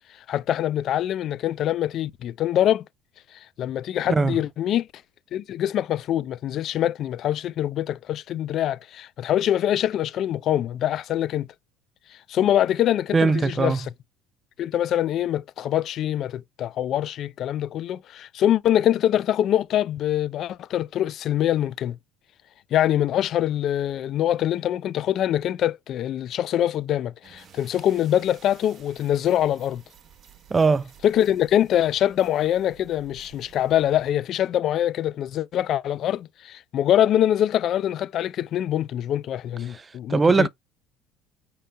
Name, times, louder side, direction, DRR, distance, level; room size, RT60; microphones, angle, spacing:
voice 1, 0.3-2.9 3.3-4.9 5.3-11.5 12.1-13.9 14.6-22.0 22.7-29.8 31.0-40.5, left 11 dB, 55° left, 0.3 m, -24 dB
voice 2, 13.1-13.8 30.5-30.9 39.7-40.5, right 4 dB, 25° right, 0.3 m, -20 dB
sound 1, 27.2-34.1, right 8 dB, 40° right, 1.0 m, -52 dB
5.5 x 3.7 x 2.2 m
supercardioid pair, 100°, 0 cm